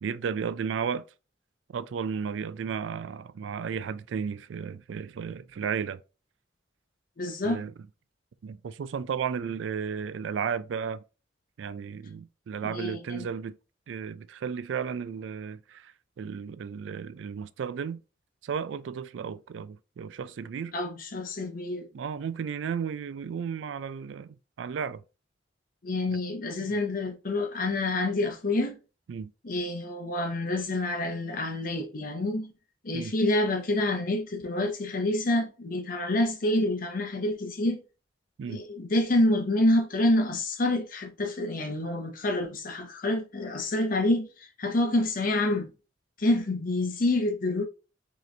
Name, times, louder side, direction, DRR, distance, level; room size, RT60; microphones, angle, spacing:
voice 1, 0.0-1.0 1.7-6.0 7.4-7.7 8.4-11.0 11.6-13.6 13.9-18.0 18.4-20.7 21.9-25.0 26.6-26.7 29.1-29.3 32.9-33.1 38.4-38.6, right 6 dB, 80° right, 0.3 m, -34 dB
voice 2, 7.2-7.6 12.6-13.3 20.7-21.9 25.8-28.8 29.4-32.5 32.8-37.8 38.5-45.7 46.2-47.6, left 1 dB, 50° left, 0.7 m, -27 dB
4.8 x 3.1 x 3.2 m
head